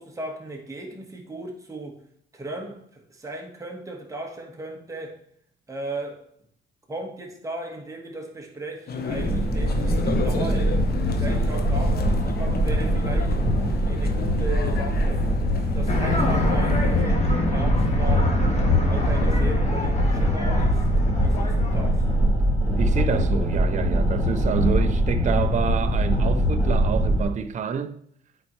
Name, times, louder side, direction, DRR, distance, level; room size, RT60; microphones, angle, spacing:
voice 1, 0.0-2.0 2.3-5.2 5.7-6.2 6.9-10.8 11.1-13.4 13.8-15.3 15.7-18.4 18.8-22.0, right 2 dB, 15° right, 1.4 m, -36 dB
sound 1, 8.9-17.0, left 4 dB, 50° left, 0.9 m, -34 dB
sound 2, 9.1-27.2, equal, 5° left, 2.2 m, -22 dB
sound 3, 15.9-22.2, left 2 dB, 35° left, 1.5 m, -27 dB
voice 2, 22.8-28.0, right 6 dB, 40° right, 0.5 m, -28 dB
8.4 x 4.4 x 3.1 m
cardioid pair, 90°, 20 cm